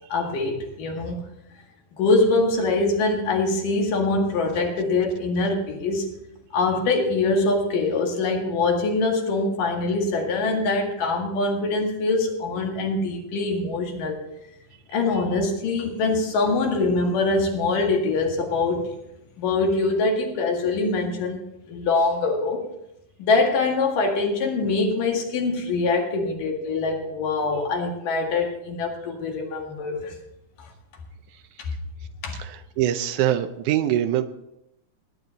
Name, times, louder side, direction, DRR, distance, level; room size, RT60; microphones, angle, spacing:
voice 1, 0.1-1.2 2.0-6.1 6.5-14.2 14.9-18.9 19.4-22.6 23.2-30.1 31.6-31.7 32.2-32.4, left 3 dB, 85° left, 1 dB, 3.6 m, -23 dB
voice 2, 32.4-34.2, right 12 dB, 75° right, 10 dB, 2.1 m, -23 dB
19.0 x 9.8 x 4.0 m, 0.83 s
omnidirectional pair, 3.7 m